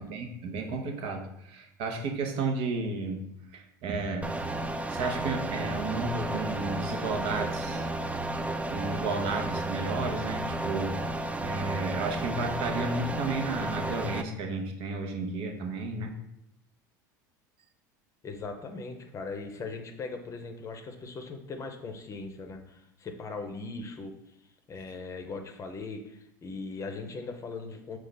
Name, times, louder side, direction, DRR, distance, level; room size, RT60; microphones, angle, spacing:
voice 1, 0.0-4.3 4.9-7.9 8.7-11.0 11.4-16.1, right 3 dB, 60° right, 3 dB, 0.8 m, -33 dB
sound 1, 4.2-14.2, right 2 dB, 15° right, 0.4 m, -33 dB
voice 2, 18.2-24.1 24.7-28.0, left 3 dB, 30° left, 5 dB, 0.7 m, -39 dB
5.3 x 2.4 x 3.9 m, 0.81 s
hypercardioid pair, 85°, 10 cm